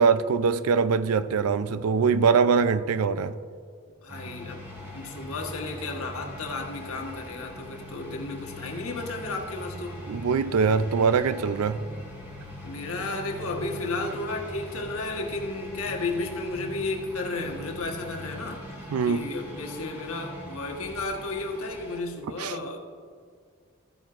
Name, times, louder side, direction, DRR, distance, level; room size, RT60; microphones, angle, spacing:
voice 1, 0.0-3.3 10.1-11.8 18.9-19.3 22.4-22.5, right 5 dB, 85° right, 0.4 m, -23 dB
voice 2, 4.0-4.6 4.9-10.0 12.6-22.8, left 3 dB, 75° left, 1.2 m, -33 dB
sound 1, 4.1-22.0, equal, 10° right, 2.0 m, -41 dB
13.5 x 9.1 x 2.5 m
head